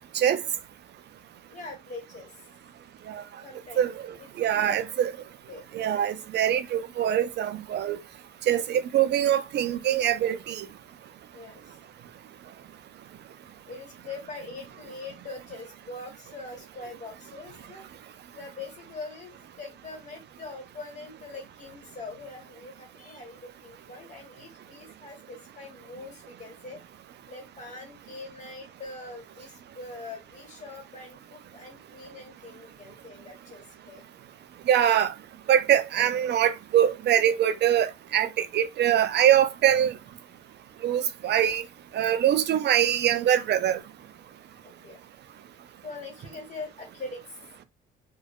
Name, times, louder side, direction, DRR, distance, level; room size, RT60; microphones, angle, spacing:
voice 1, 1.5-2.4 3.4-3.9 4.2-5.1 5.5-5.6 11.3-11.8 13.6-17.9 18.3-26.8 27.3-34.0 42.0-42.2 44.6-45.0 45.8-47.4, left 3 dB, 40° left, 1.4 m, -43 dB
voice 2, 3.8-5.1 5.7-8.0 8.5-10.7 34.7-35.1 35.5-39.9 40.8-41.6 41.9-43.8, right 10 dB, 60° right, 0.4 m, -23 dB
2.5 x 2.2 x 2.3 m
cardioid pair, 90°, 20 cm